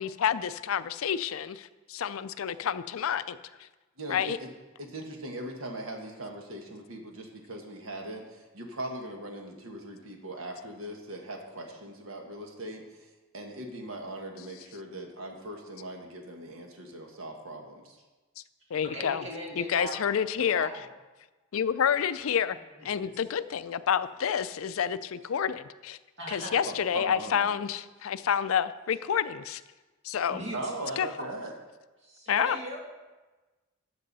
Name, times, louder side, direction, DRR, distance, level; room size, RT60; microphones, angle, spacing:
voice 1, 0.0-3.7 4.1-4.4 18.7-19.2 19.6-20.7 21.5-22.6 22.8-26.0 26.3-29.6 30.0-30.4 31.0-31.1 32.3-32.6, left 8 dB, 75° left, 14 dB, 0.4 m, -29 dB
voice 2, 4.0-4.5 4.8-12.8 13.3-18.0 20.5-20.9 26.6-27.5 30.5-31.5, right 1 dB, 75° right, 2 dB, 1.4 m, -40 dB
voice 3, 18.8-20.0 20.4-20.7 22.9-23.1 26.2-26.6 30.3-31.0 32.0-32.8, right 1 dB, 60° right, -3 dB, 2.6 m, -39 dB
13.0 x 6.9 x 4.1 m, 1.2 s
head